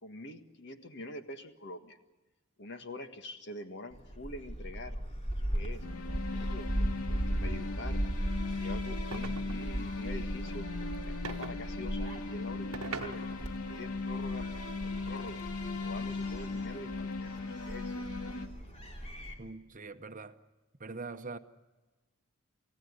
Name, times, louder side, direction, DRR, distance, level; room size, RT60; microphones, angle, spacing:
voice 1, 0.0-2.0 2.6-5.0 5.5-5.8 6.3-6.7 7.1-8.0 8.6-10.7 11.1-13.2 13.7-15.4 15.8-17.3 17.7-17.9, left 2 dB, 50° left, 1.7 m, -45 dB
Gull seagull, 3.9-19.3, equal, 30° left, 3.4 m, -38 dB
sound 1, 5.8-18.5, left 3 dB, 85° left, 2.1 m, -38 dB
sound 2, 9.1-9.8 11.2-11.6 12.7-13.6, right 4 dB, 70° right, 1.1 m, -42 dB
voice 2, 19.4-20.4 20.8-21.4, right 3 dB, 35° right, 0.9 m, -43 dB
28.5 x 16.0 x 9.6 m
head